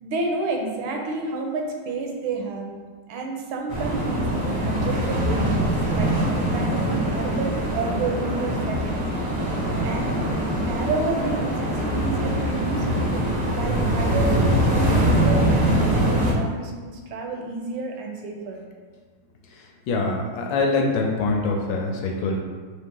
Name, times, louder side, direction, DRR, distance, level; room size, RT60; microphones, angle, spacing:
voice 1, 0.0-2.7 3.1-5.7 5.9-9.0 9.8-10.3 10.5-18.6, right 3 dB, 80° right, 2 dB, 1.4 m, -30 dB
sound 1, 3.7-16.3, right 1 dB, 40° right, 0.6 m, -23 dB
voice 2, 19.9-22.4, left 3 dB, 75° left, 1 dB, 1.3 m, -24 dB
4.1 x 2.9 x 3.7 m, 1.5 s
omnidirectional pair, 2.3 m